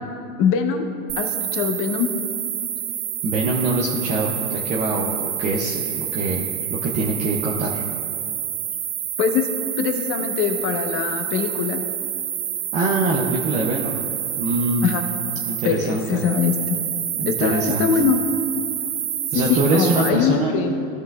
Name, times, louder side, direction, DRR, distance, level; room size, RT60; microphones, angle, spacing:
voice 1, 0.4-0.9 1.2-2.1 9.2-9.5 9.8-11.8 14.8-15.0 15.6-16.8 17.3-18.2 19.3-20.7, left 7 dB, 30° left, 6 dB, 0.8 m, -22 dB
sound 1, 1.1-20.1, right 10 dB, 55° right, 0.9 m, -28 dB
voice 2, 3.2-7.8 12.7-14.0 14.4-15.0 15.5-16.2 17.2-17.9 19.3-20.5, right 2 dB, 20° right, -1 dB, 0.4 m, -24 dB
16.0 x 5.5 x 2.3 m, 2.6 s
hypercardioid pair, 120°, 45 cm